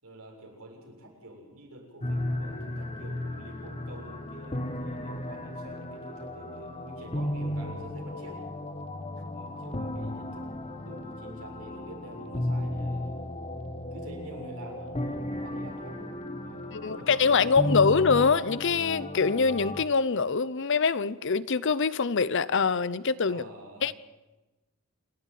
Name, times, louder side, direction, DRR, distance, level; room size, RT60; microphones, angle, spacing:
voice 1, 0.0-8.4 9.3-10.5 10.8-13.2 13.9-17.9 23.3-23.9, right 1 dB, 90° right, 0 dB, 7.3 m, -47 dB
sound 1, 2.0-19.8, left 1 dB, 30° left, 1.7 m, -35 dB
voice 2, 16.7-23.4 23.8-23.9, left 5 dB, 60° left, 17 dB, 0.7 m, -24 dB
27.5 x 12.5 x 9.3 m, 1.1 s
head